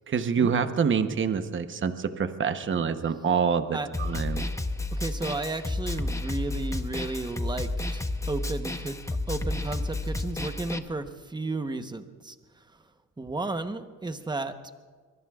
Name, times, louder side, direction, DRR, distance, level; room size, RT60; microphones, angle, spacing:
voice 1, 0.1-4.5, right 6 dB, 35° right, 9 dB, 1.0 m, -26 dB
Snare drum, 3.9-10.8, left 2 dB, 10° left, 0.7 m, -31 dB
voice 2, 4.9-8.9 9.3-12.6 13.2-14.6, right 2 dB, 15° right, 8 dB, 1.0 m, -33 dB
24.0 x 22.5 x 2.4 m, 1.5 s
cardioid pair, 120°, 33 cm